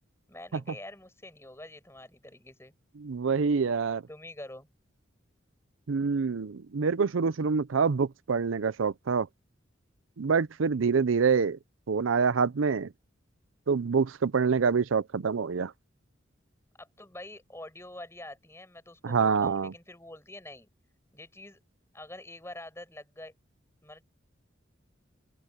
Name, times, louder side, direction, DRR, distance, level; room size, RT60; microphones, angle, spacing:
voice 1, 0.3-2.7 4.1-4.7 16.8-20.7 21.1-21.6 21.9-23.3 23.8-24.0, left 1 dB, 15° left, 7.0 m, -46 dB
voice 2, 3.0-4.0 5.9-9.3 10.2-11.6 11.9-12.9 13.7-15.7 19.0-19.7, right 5 dB, 85° right, 0.5 m, -26 dB
open air
head